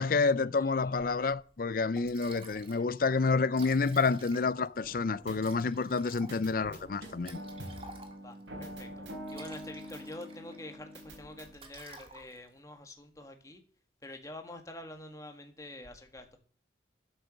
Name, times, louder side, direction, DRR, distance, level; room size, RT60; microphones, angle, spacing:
voice 1, 0.0-7.4, left 4 dB, 50° left, 0.5 m, -29 dB
voice 2, 0.5-1.2 8.2-9.0 9.3-13.6 14.0-16.4, left 1 dB, 20° left, 1.9 m, -47 dB
Liquid, 1.6-1.7 2.0-2.9 3.2-3.3 3.4-4.7 5.4-8.4 9.1-10.6 10.9-11.2 11.5-12.6, right 3 dB, 30° right, 1.8 m, -52 dB
sound 1, 4.8-5.8 6.3-11.5, equal, 85° right, 3.9 m, -45 dB
12.0 x 8.1 x 6.4 m
head